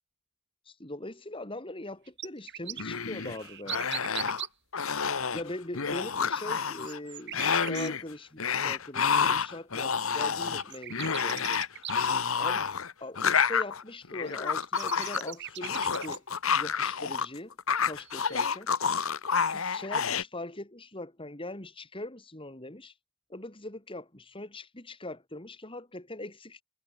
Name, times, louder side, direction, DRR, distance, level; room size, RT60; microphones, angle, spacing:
voice 1, 0.6-3.9 5.3-11.6 12.4-12.7 13.0-16.2 16.6-17.5 17.8-18.7 19.5-23.0 23.3-26.6, left 1 dB, 25° left, 2.6 m, -41 dB
sound 1, 1.9-4.5 6.5-7.9 9.8-9.9 10.2-10.3 10.6-12.1 14.2-16.2 18.0-18.5, right 12 dB, 50° right, 2.1 m, -40 dB
sound 2, 2.8-3.4 3.7-4.5 4.7-5.4 5.7-7.0 7.3-8.0 8.4-17.3 17.5-20.2, left 6 dB, 65° left, 1.4 m, -29 dB
head